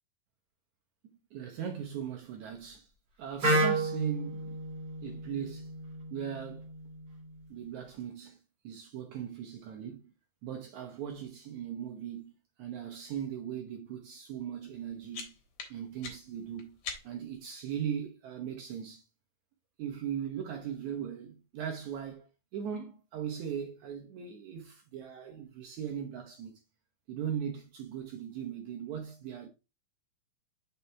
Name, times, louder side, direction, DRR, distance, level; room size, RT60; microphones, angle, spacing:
voice 1, 1.3-2.9 3.2-4.5 5.0-5.7 6.1-6.7 7.5-10.1 10.4-12.3 12.6-15.4 15.7-16.8 17.0-19.0 19.8-26.6 27.1-29.5, right 8 dB, 75° right, 1.7 m, -39 dB
Wind instrument woodwind instrument, 3.4-7.3, right 1 dB, 35° right, 1.7 m, -32 dB
sound 1, 14.7-17.4, left 5 dB, 60° left, 2.2 m, -45 dB
5.6 x 4.0 x 4.3 m
omnidirectional pair, 4.2 m